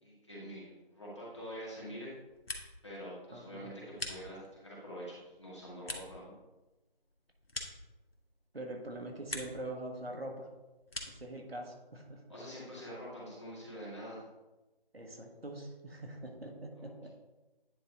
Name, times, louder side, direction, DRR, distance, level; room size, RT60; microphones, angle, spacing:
voice 1, 0.0-2.1 2.8-6.3 12.3-14.2 16.8-16.9, equal, 30° left, -7 dB, 2.1 m, -45 dB
sound 1, 2.1-3.0 3.3-4.7 5.2-8.4 8.8-9.7 10.0-11.3, left 2 dB, 75° left, 1.4 m, -45 dB
voice 2, 3.3-3.7 8.5-10.5 11.1-12.2 14.9-17.1, right 1 dB, 80° right, 2 dB, 1.7 m, -43 dB
9.6 x 3.7 x 4.0 m, 1.1 s
figure-of-eight pair, 175°, 30 cm